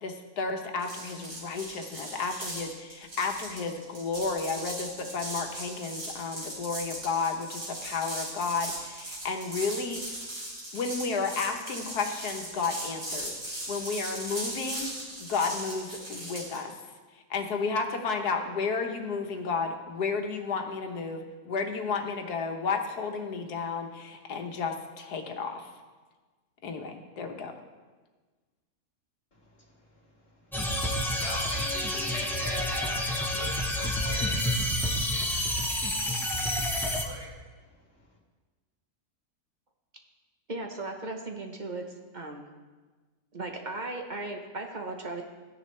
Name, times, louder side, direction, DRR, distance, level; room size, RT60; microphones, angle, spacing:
voice 1, 0.0-10.0 10.7-13.4 13.7-14.9 15.2-16.7 17.3-25.7 26.6-27.6, left 4 dB, 80° left, 4 dB, 1.6 m, -32 dB
sound 1, 0.8-16.6, right 1 dB, 65° right, 4.3 m, -38 dB
voice 2, 29.3-38.2, left 1 dB, 35° left, -3 dB, 2.6 m, -44 dB
sound 2, 30.5-37.0, left 1 dB, ahead, 0.6 m, -29 dB
voice 3, 40.5-42.4 43.3-45.2, right 2 dB, 35° right, 3 dB, 0.9 m, -37 dB
14.0 x 10.0 x 3.2 m, 1.3 s
omnidirectional pair, 1.7 m